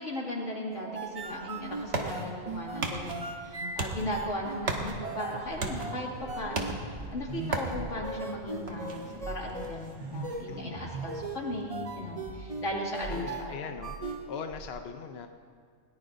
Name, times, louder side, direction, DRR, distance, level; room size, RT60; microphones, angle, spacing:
voice 1, 0.0-13.6, left 1 dB, 85° left, -3 dB, 2.7 m, -37 dB
sound 1, 0.7-14.7, right 3 dB, 35° right, 0.7 m, -39 dB
sound 2, 1.2-12.7, right 3 dB, 60° right, 1.5 m, -39 dB
sound 3, 5.5-12.6, left 1 dB, 20° right, 4.0 m, -49 dB
voice 2, 10.5-10.8 13.1-13.9 14.3-15.3, left 6 dB, 60° left, 6 dB, 0.9 m, -40 dB
20.5 x 18.5 x 2.6 m, 2.1 s
omnidirectional pair, 1.3 m